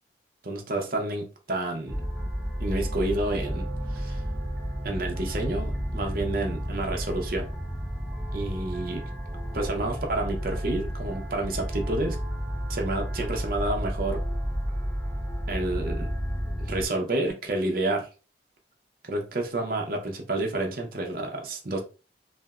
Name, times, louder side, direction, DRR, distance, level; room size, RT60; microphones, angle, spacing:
voice 1, 0.4-2.0 2.6-4.2 4.8-7.5 8.3-9.1 9.5-12.2 12.7-14.2 15.5-16.1 16.6-18.1 19.0-21.8, right 2 dB, 50° right, 0.6 m, -29 dB
sound 1, 1.9-16.9, equal, ahead, 0.3 m, -31 dB
3.2 x 2.0 x 2.3 m
head